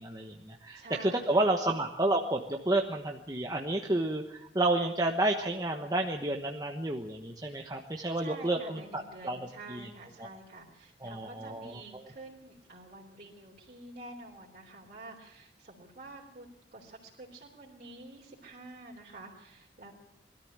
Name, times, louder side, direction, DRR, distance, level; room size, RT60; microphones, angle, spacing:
voice 1, 0.0-9.9 11.0-11.8, right 2 dB, 20° right, 2 dB, 1.2 m, -30 dB
voice 2, 0.7-1.5 8.1-19.9, right 2 dB, 45° right, -4 dB, 3.6 m, -49 dB
21.5 x 13.5 x 8.9 m, 0.81 s
head